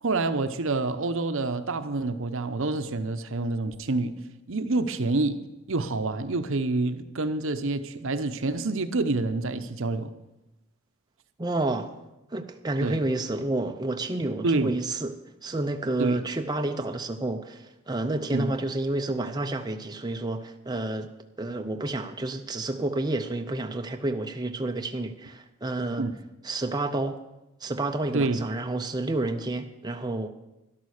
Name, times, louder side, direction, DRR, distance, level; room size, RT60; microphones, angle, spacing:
voice 1, 0.0-4.2 4.5-5.4 5.7-10.1 12.8-13.0 14.4-14.7 16.0-16.2 18.3-18.6 26.0-26.2 28.1-28.4, right 3 dB, 60° right, 0.8 m, -27 dB
voice 2, 11.4-11.9 12.3-15.1 15.4-21.1 21.4-26.1 26.4-27.2 27.6-30.3, right 2 dB, 20° right, 0.6 m, -30 dB
13.0 x 11.5 x 6.5 m
head